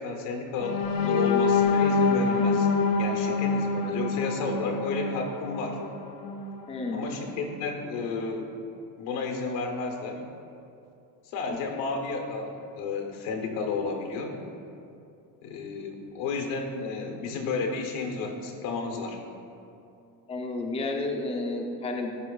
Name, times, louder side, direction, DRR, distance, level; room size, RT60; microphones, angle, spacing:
voice 1, 0.0-2.7 3.0-5.8 6.9-8.6 9.0-10.2 11.2-14.4 15.4-19.2, left 4 dB, 80° left, 3 dB, 1.0 m, -32 dB
sound 1, 0.6-6.5 7.0-7.2 7.6-7.8, left 4 dB, 55° left, 0.7 m, -26 dB
voice 2, 6.7-7.1 11.5-11.6 20.3-22.2, left 2 dB, 15° left, 1 dB, 0.5 m, -31 dB
12.5 x 4.4 x 2.4 m, 2.6 s
cardioid pair, 125°, 38 cm